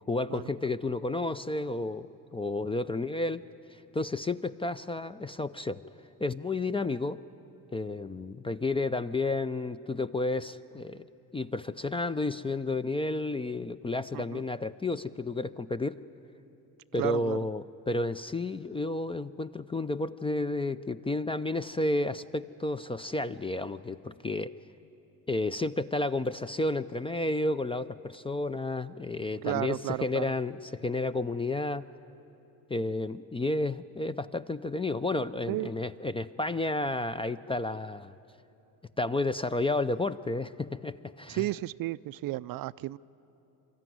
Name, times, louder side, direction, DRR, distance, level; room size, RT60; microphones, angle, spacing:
voice 1, 0.1-3.4 3.7-5.8 6.2-7.2 7.7-11.0 11.3-16.0 16.9-24.5 25.3-31.9 32.7-38.1 39.0-41.4, left 2 dB, 15° left, 14 dB, 0.4 m, -31 dB
voice 2, 17.0-17.4 29.4-30.3 35.5-35.7 41.3-43.0, right 17 dB, 50° right, 17 dB, 0.4 m, -33 dB
24.5 x 13.5 x 9.4 m, 2.9 s
hypercardioid pair, 65°, 45 cm